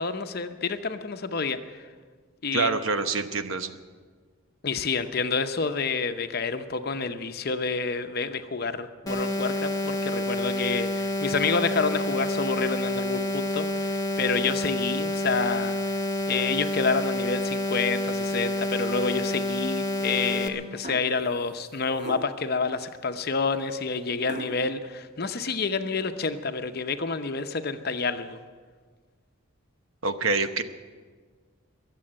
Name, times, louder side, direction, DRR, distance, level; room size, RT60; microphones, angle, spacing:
voice 1, 0.0-1.9 2.4-2.8 4.6-15.8 16.3-28.4, left 4 dB, 45° left, 8 dB, 0.7 m, -28 dB
voice 2, 2.5-3.8 30.0-30.6, right 3 dB, 70° right, 9 dB, 0.9 m, -26 dB
sound 1, 9.1-20.5, left 1 dB, 15° left, 1.1 m, -28 dB
sound 2, 20.8-21.3 22.0-22.5 24.3-24.7, right 2 dB, 35° right, 0.8 m, -38 dB
22.5 x 7.7 x 7.6 m, 1.5 s
head